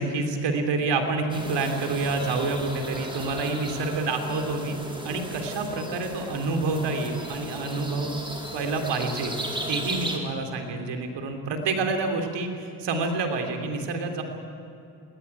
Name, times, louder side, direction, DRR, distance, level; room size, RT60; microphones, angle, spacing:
voice 1, 0.0-4.8 5.0-8.1 8.5-9.4 9.7-14.2, right 3 dB, 90° right, 4 dB, 3.2 m, -28 dB
sound 1, 1.3-10.2, right 1 dB, 10° right, 4.2 m, -35 dB
20.5 x 19.5 x 9.7 m, 2.8 s
cardioid pair, 85°, 41 cm